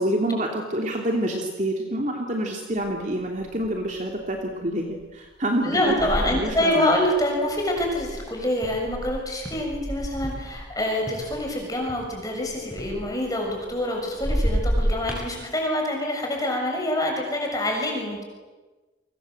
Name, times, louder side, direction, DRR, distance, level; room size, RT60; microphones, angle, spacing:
voice 1, 0.0-6.9, right 1 dB, 40° right, 1 dB, 2.9 m, -27 dB
sound 1, 2.8-2.9 3.4-3.8 4.4-4.6 5.5-10.8 11.1-13.9 14.2-15.3, equal, 5° right, 7.5 m, -30 dB
voice 2, 5.6-18.2, left 1 dB, 20° left, 0 dB, 6.7 m, -26 dB
29.5 x 24.5 x 7.9 m, 1.2 s
head